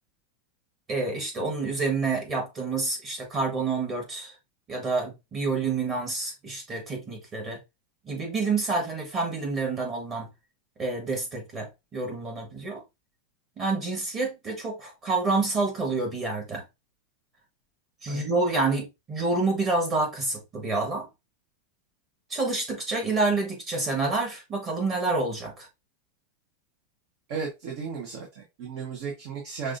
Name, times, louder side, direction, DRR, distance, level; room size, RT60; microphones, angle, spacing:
voice 1, 0.9-4.3 4.7-7.6 8.1-10.3 10.8-12.8 13.6-16.6 18.0-21.1 22.3-25.7, right 3 dB, 25° right, 1.5 m, -28 dB
voice 2, 27.3-29.8, right 5 dB, 50° right, 1.3 m, -35 dB
5.9 x 2.6 x 2.7 m
supercardioid pair, 160°, 0 cm